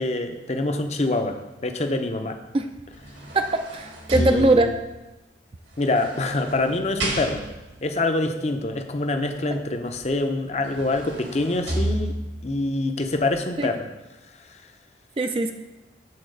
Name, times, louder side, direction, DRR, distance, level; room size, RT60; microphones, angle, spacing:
voice 1, 0.0-2.4 4.1-4.7 5.8-7.4 7.8-12.2 12.4-13.9, left 2 dB, 35° left, 6 dB, 0.6 m, -25 dB
sound 1, 2.7-5.0 5.8-7.8 10.0-10.1 10.5-12.5 13.1-13.2, right 1 dB, 70° right, 1.6 m, -31 dB
voice 2, 3.3-4.7 13.6-13.7 15.2-15.5, right 2 dB, 30° right, 6 dB, 0.4 m, -21 dB
8.6 x 4.1 x 6.5 m, 1.0 s
head